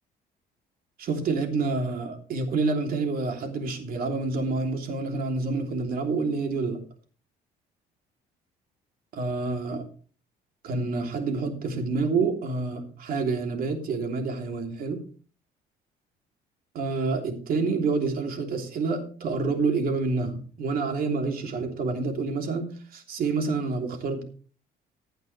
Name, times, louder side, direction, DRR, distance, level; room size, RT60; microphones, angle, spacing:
voice 1, 1.0-6.8 9.1-9.8 10.6-15.0 16.7-22.7 22.9-24.2, right 3 dB, 60° right, 4 dB, 3.1 m, -28 dB
16.0 x 9.1 x 3.3 m, 0.40 s
cardioid pair, 110°, 17 cm